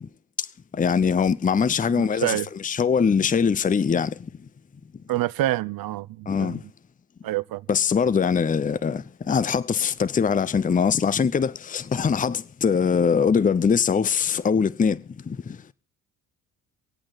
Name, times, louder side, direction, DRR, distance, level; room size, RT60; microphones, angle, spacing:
voice 1, 0.8-4.1 6.3-6.6 7.7-15.0 15.3-15.4, left 6 dB, 20° left, 0.7 m, -22 dB
voice 2, 2.0-2.5 5.1-6.6 7.2-7.6, right 15 dB, 50° right, 0.7 m, -27 dB
25.5 x 8.7 x 4.1 m
hypercardioid pair, 50°, 44 cm